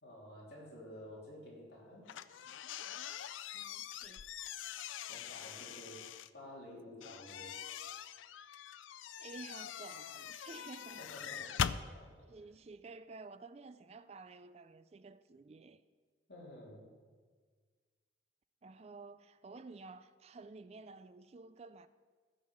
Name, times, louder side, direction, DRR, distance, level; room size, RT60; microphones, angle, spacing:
voice 1, 0.0-2.1 5.1-7.6 11.0-12.2 16.3-16.9, left 1 dB, 55° left, 3.1 m, -52 dB
sound 1, 2.1-6.3 7.0-11.8, left 9 dB, 85° left, 0.4 m, -42 dB
voice 2, 3.5-4.3 9.2-11.0 12.3-15.8 18.6-21.9, right 3 dB, 35° right, 0.3 m, -52 dB
14.5 x 5.6 x 6.2 m
head